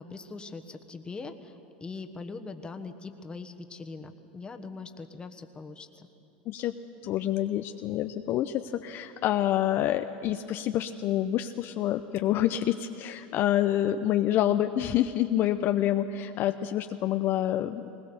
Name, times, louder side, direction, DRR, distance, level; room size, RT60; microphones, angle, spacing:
voice 1, 0.0-6.1, left 4 dB, 20° left, 7 dB, 1.3 m, -41 dB
voice 2, 7.0-17.9, left 12 dB, 50° left, 8 dB, 0.6 m, -27 dB
20.5 x 19.0 x 7.0 m, 2.9 s
hypercardioid pair, 105°, 5 cm